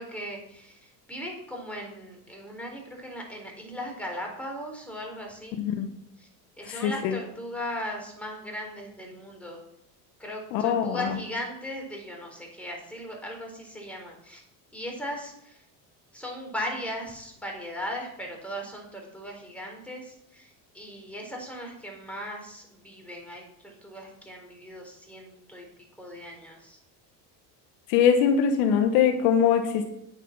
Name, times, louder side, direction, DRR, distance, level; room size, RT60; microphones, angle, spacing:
voice 1, 0.0-5.6 6.2-6.3 6.6-9.6 10.2-14.4 14.7-15.6 16.1-20.5 20.7-25.7 26.0-26.8, equal, 5° left, 0 dB, 4.2 m, -38 dB
voice 2, 5.6-5.9 6.7-7.2 10.5-11.1 27.9-29.9, left 7 dB, 80° left, 7 dB, 1.2 m, -22 dB
8.9 x 7.3 x 6.0 m, 0.78 s
supercardioid pair, 95°, 46 cm